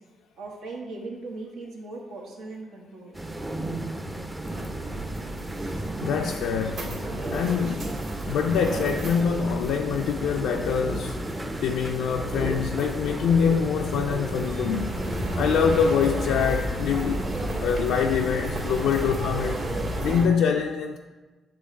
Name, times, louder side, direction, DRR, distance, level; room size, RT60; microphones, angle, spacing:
voice 1, 0.4-3.2, right 3 dB, 90° right, -1 dB, 1.2 m, -38 dB
sound 1, 3.1-20.0, right 1 dB, 15° right, 0.5 m, -35 dB
sound 2, 4.4-20.3, right 1 dB, 65° right, 1.6 m, -33 dB
voice 2, 6.0-7.0 7.2-8.0 8.3-11.2 11.6-15.0 15.4-17.2 17.6-19.6 20.0-21.0, left 7 dB, 85° left, 2 dB, 0.3 m, -25 dB
7.9 x 3.2 x 4.0 m, 1.2 s
cardioid pair, 90°, 0 cm